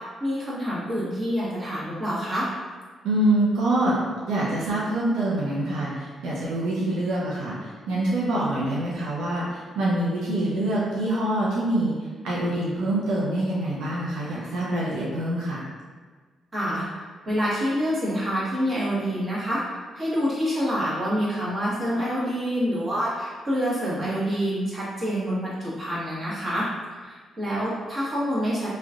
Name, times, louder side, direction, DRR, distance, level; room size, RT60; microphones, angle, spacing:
voice 1, 0.0-2.5 16.5-16.8 17.3-19.6 19.9-26.6 27.0-28.7, equal, 35° right, -8 dB, 1.3 m, -27 dB
voice 2, 3.0-4.0 4.3-11.9 12.2-15.6, right 1 dB, 90° right, -7 dB, 0.7 m, -25 dB
3.1 x 3.0 x 2.5 m, 1.5 s
cardioid pair, 80°, 0 cm